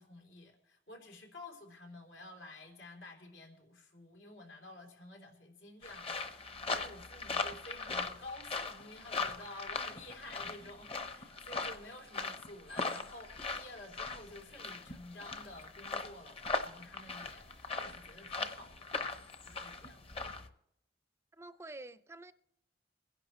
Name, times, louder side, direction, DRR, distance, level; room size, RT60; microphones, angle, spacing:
voice 1, 0.0-18.9 19.5-20.1, left 2 dB, 90° left, 3.4 m, -51 dB
sound 1, 5.8-20.5, left 4 dB, 35° left, 0.9 m, -40 dB
voice 2, 21.3-22.3, right 2 dB, 15° right, 0.5 m, -48 dB
24.5 x 10.5 x 3.1 m
head